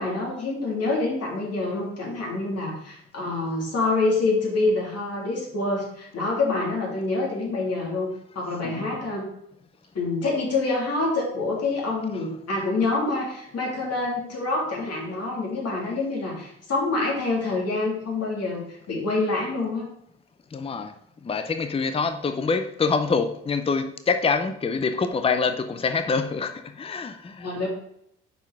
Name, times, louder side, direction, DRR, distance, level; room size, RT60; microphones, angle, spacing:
voice 1, 0.0-9.3 9.9-19.9 27.4-27.7, left 3 dB, 55° left, 2.7 m, -26 dB
voice 2, 8.6-9.1 12.1-12.3 20.5-20.9 21.2-27.5, left 4 dB, 20° left, 0.6 m, -26 dB
5.1 x 4.5 x 4.7 m
hypercardioid pair, 55°, 30 cm